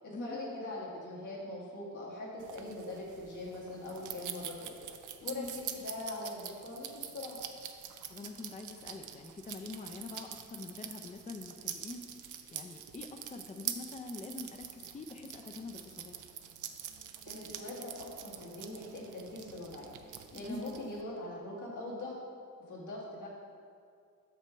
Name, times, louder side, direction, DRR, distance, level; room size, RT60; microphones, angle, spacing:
voice 1, 0.0-4.7 5.2-7.4 17.2-22.2 22.7-23.3, left 2 dB, 85° left, -6 dB, 1.8 m, -42 dB
sound 1, 2.4-21.0, right 9 dB, 85° right, 0.5 m, -45 dB
voice 2, 8.1-16.2 20.4-20.8, left 3 dB, 25° left, 5 dB, 0.4 m, -45 dB
6.0 x 5.8 x 4.5 m, 2.3 s
cardioid pair, 80°, 30 cm